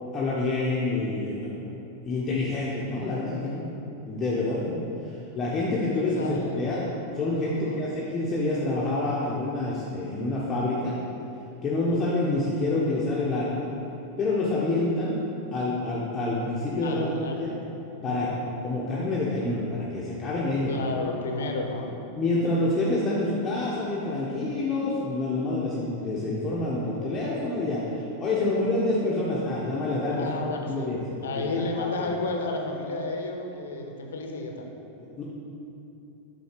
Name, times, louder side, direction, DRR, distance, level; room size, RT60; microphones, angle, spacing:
voice 1, 0.1-1.7 2.0-3.7 4.0-6.8 7.1-11.0 11.6-13.7 14.2-15.2 15.5-17.0 17.4-17.6 18.0-18.3 18.6-20.8 22.2-30.4 30.7-31.0 31.5-32.1 35.0-35.2, left 2 dB, 20° left, -6 dB, 1.0 m, -27 dB
voice 2, 6.2-6.5 7.4-7.8 16.8-17.5 18.0-18.5 20.7-22.0 30.1-34.7, left 2 dB, 65° left, 3 dB, 0.8 m, -32 dB
8.0 x 4.2 x 5.1 m, 2.9 s
figure-of-eight pair, 90°, 0 cm